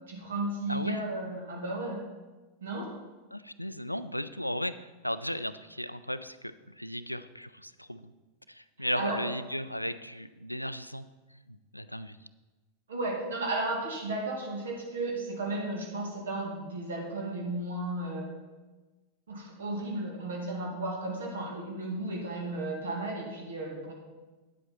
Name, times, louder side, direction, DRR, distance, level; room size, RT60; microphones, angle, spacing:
voice 1, 0.1-2.0 2.6-2.9 8.8-9.2 12.9-18.3 19.3-23.9, right 2 dB, 65° right, 0 dB, 2.1 m, -34 dB
voice 2, 0.7-1.0 3.3-8.1 8.5-11.1 11.5-12.2, equal, 90° left, 13 dB, 0.3 m, -36 dB
9.6 x 7.7 x 4.2 m, 1.2 s
figure-of-eight pair, 90°, 0 cm